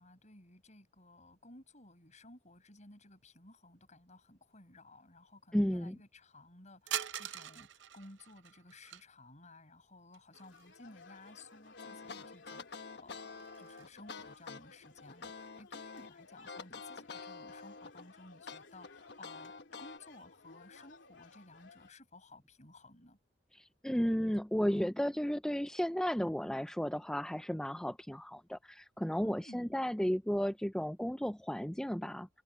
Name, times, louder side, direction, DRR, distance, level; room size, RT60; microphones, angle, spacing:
voice 1, 0.0-23.2 29.2-29.8, left 2 dB, 40° left, 7.0 m, -57 dB
voice 2, 5.5-6.0 23.6-32.3, equal, 5° left, 0.5 m, -33 dB
sound 1, 6.9-9.0 10.1-10.9 11.2-11.3 12.3-12.4 12.8-13.9, right 10 dB, 80° right, 0.7 m, -43 dB
sound 2, 10.3-21.9, left 4 dB, 85° left, 2.7 m, -58 dB
sound 3, 11.8-16.1 16.5-18.1 18.5-20.0, left 4 dB, 65° left, 1.3 m, -47 dB
head